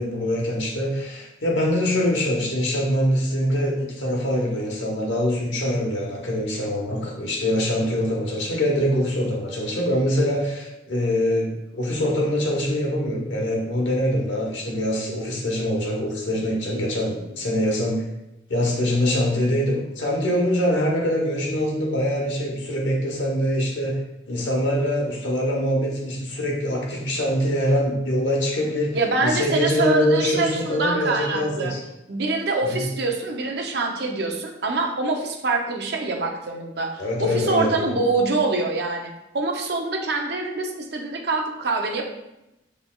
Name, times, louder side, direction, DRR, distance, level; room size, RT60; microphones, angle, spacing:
voice 1, 0.0-18.0 18.5-24.0 24.3-31.8 32.6-32.8 37.0-37.9, equal, 85° left, -2 dB, 1.1 m, -24 dB
voice 2, 28.9-31.7 32.1-36.9 37.2-42.0, right 3 dB, 60° right, 2 dB, 0.7 m, -25 dB
6.0 x 3.4 x 2.3 m, 0.90 s
head